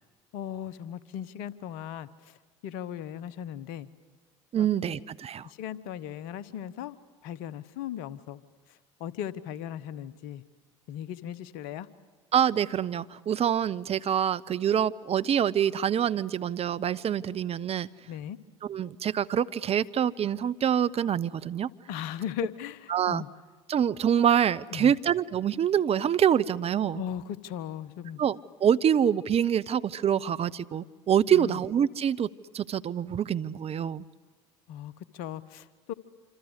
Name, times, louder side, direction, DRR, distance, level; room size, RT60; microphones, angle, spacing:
voice 1, 0.3-2.4 2.6-3.9 4.6-4.7 5.4-7.0 7.2-8.4 8.7-10.4 10.9-11.9 18.1-18.4 21.9-23.3 24.7-24.9 26.9-28.2 31.3-31.6 34.7-35.9, left 10 dB, 70° left, 18 dB, 1.1 m, -37 dB
voice 2, 4.5-5.5 12.3-17.9 18.6-21.7 22.9-23.2 23.7-27.0 28.2-34.1, right 9 dB, 40° right, 15 dB, 0.8 m, -26 dB
26.5 x 26.0 x 8.2 m, 1.4 s
hypercardioid pair, 60°, 15 cm